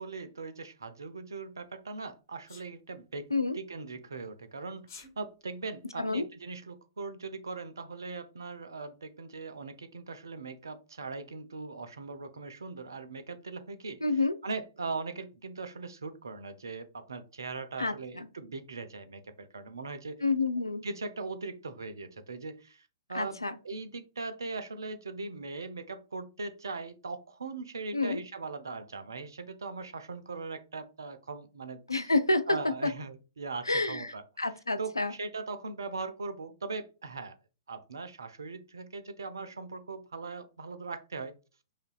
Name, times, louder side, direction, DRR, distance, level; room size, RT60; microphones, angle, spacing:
voice 1, 0.0-3.3 3.5-14.0 14.4-20.2 20.8-32.1 32.5-34.2 34.8-37.4 37.7-41.3, right 4 dB, 65° right, 11 dB, 0.6 m, -40 dB
Sneeze, 2.5-2.7 4.8-5.1, left 4 dB, 45° left, 1.3 m, -49 dB
voice 2, 14.0-14.4 17.8-18.3 20.2-20.9 23.1-23.6 27.9-28.2 31.9-32.6 33.7-35.1, left 3 dB, 85° left, 11 dB, 0.4 m, -29 dB
5.0 x 2.6 x 2.3 m, 0.32 s
figure-of-eight pair, 110°, 2 cm